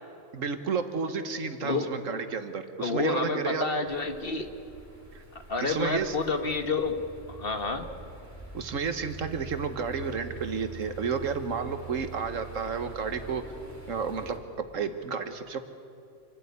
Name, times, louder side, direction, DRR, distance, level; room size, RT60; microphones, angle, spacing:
voice 1, 0.3-3.7 5.1-5.2 5.6-6.2 8.5-13.4 13.9-14.4 14.7-15.6, right 5 dB, 85° right, 9 dB, 1.7 m, -31 dB
voice 2, 2.8-4.5 5.5-7.0 7.3-7.9, left 4 dB, 50° left, 7 dB, 1.6 m, -29 dB
sound 1, 3.9-14.4, right 4 dB, 10° right, 3.1 m, -45 dB
27.5 x 12.5 x 9.7 m, 2.8 s
omnidirectional pair, 1.3 m